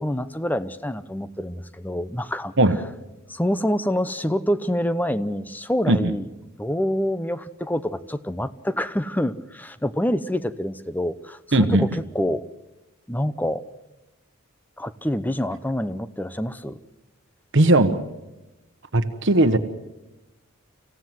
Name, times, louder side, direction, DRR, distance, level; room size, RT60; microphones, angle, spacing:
voice 1, 0.0-2.5 3.3-6.3 6.6-12.4 13.1-13.6 14.8-16.8, equal, 10° left, 14 dB, 0.7 m, -26 dB
voice 2, 11.5-11.8 17.5-18.0 18.9-19.6, right 1 dB, 60° right, 9 dB, 1.2 m, -17 dB
26.0 x 15.5 x 7.9 m, 0.98 s
head